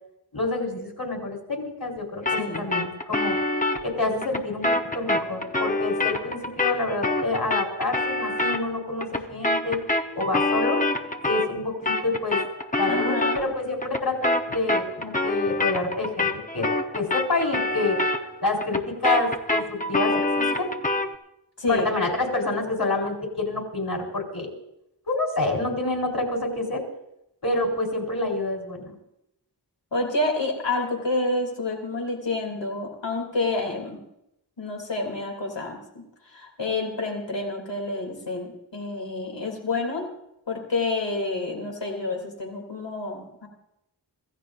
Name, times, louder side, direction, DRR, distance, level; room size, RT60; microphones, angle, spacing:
voice 1, 0.3-3.4 3.8-9.8 10.2-10.8 11.2-12.4 12.8-16.7 16.9-18.0 18.4-20.7 21.7-24.5 25.1-26.8 27.4-29.0, left 2 dB, 65° left, 0 dB, 4.2 m, -28 dB
sound 1, 2.3-11.6 11.9-21.2, left 2 dB, 20° left, 1.0 m, -27 dB
voice 2, 2.4-2.7 12.9-13.5 21.6-21.9 29.9-34.0 34.6-36.0 36.3-40.1 40.5-43.5, left 2 dB, 85° left, 1 dB, 3.1 m, -28 dB
26.0 x 15.0 x 2.7 m, 0.83 s
wide cardioid pair, 60°, 42 cm